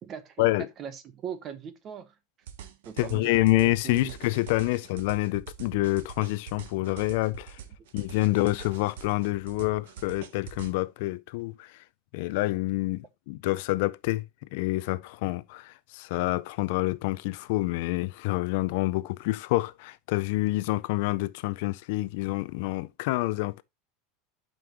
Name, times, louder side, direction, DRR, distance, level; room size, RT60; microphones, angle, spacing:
voice 1, 0.0-0.5 0.8-2.1 2.8-3.3 3.6-4.1, right 8 dB, 25° right, 0.8 m, -39 dB
sound 1, 2.5-10.7, right 9 dB, 85° right, 1.1 m, -44 dB
voice 2, 3.0-7.6 7.9-11.8 12.1-14.2 14.5-23.6, left 19 dB, 55° left, 0.4 m, -27 dB
11.0 x 5.3 x 2.9 m
supercardioid pair, 175°, 0 cm